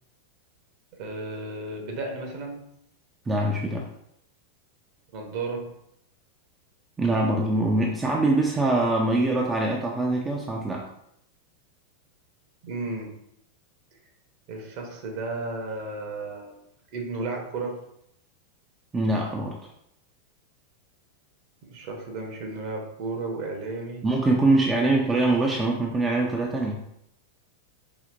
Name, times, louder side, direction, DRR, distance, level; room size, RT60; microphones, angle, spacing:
voice 1, 0.9-2.6 5.1-5.7 12.6-13.2 14.5-16.6 16.9-17.8 21.6-24.1, right 3 dB, 45° right, 1 dB, 0.9 m, -33 dB
voice 2, 3.3-3.9 7.0-10.8 18.9-19.6 24.0-26.8, right 2 dB, 15° right, -1 dB, 0.4 m, -23 dB
5.1 x 2.8 x 2.5 m, 0.76 s
figure-of-eight pair, 90°, 0 cm